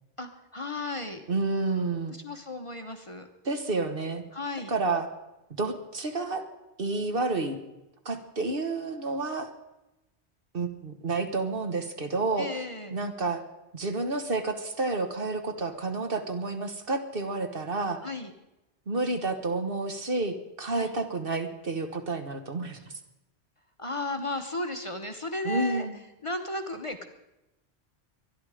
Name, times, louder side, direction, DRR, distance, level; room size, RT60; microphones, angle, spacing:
voice 1, 0.2-1.2 2.1-3.3 4.3-4.7 12.4-12.9 18.0-18.3 20.8-20.9 23.8-25.8 26.2-27.0, left 2 dB, 30° left, 5 dB, 1.0 m, -34 dB
voice 2, 1.3-2.1 3.4-4.2 4.7-5.1 5.6-6.4 6.8-7.6 8.0-9.5 10.5-12.5 12.9-13.4 13.7-18.1 18.9-22.8 25.4-25.9, right 3 dB, 55° right, 7 dB, 1.5 m, -30 dB
24.0 x 11.0 x 5.0 m, 0.96 s
omnidirectional pair, 1.2 m